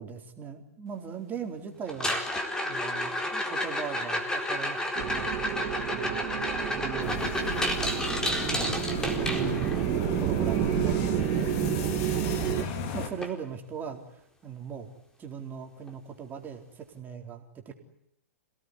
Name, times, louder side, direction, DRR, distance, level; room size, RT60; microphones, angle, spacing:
voice 1, 0.0-2.1 2.6-5.3 5.8-6.3 6.5-7.4 8.4-8.9 9.2-11.8 12.4-12.7 12.9-14.9 15.2-17.7, right 7 dB, 20° right, 3 dB, 4.0 m, -39 dB
sound 1, 1.9-9.9 12.1-12.2 12.5-12.8 13.2-13.3 13.9-14.0 15.9-16.0, left 1 dB, 10° left, 4.2 m, -31 dB
sound 2, 5.0-12.6, right 11 dB, 40° right, 2.7 m, -30 dB
sound 3, 7.0-13.1, left 6 dB, 45° left, 4.2 m, -36 dB
28.5 x 18.0 x 9.7 m, 0.75 s
hypercardioid pair, 120°, 8 cm